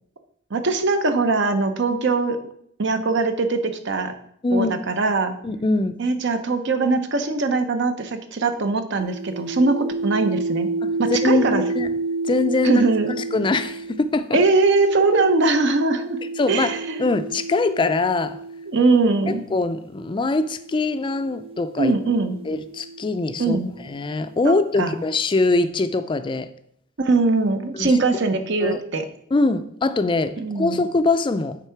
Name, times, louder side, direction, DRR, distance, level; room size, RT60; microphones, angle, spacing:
voice 1, 0.5-2.4 2.8-4.1 4.5-5.4 6.0-10.7 11.0-11.6 12.6-13.1 14.3-16.2 16.5-17.1 18.7-19.4 21.8-22.4 23.4-23.7 24.4-25.0 27.0-29.0 30.4-30.9, right 3 dB, 65° right, 8 dB, 0.7 m, -21 dB
voice 2, 4.4-4.8 5.4-6.0 10.8-11.9 12.2-12.8 13.3-14.4 16.4-18.4 19.5-22.0 22.5-23.6 23.9-26.5 27.7-28.0 28.6-28.8 29.3-31.6, left 3 dB, 25° left, 12 dB, 0.4 m, -23 dB
sound 1, 9.0-19.4 20.3-24.0, right 3 dB, 30° right, 0.6 m, -31 dB
9.0 x 3.7 x 4.5 m, 0.70 s
head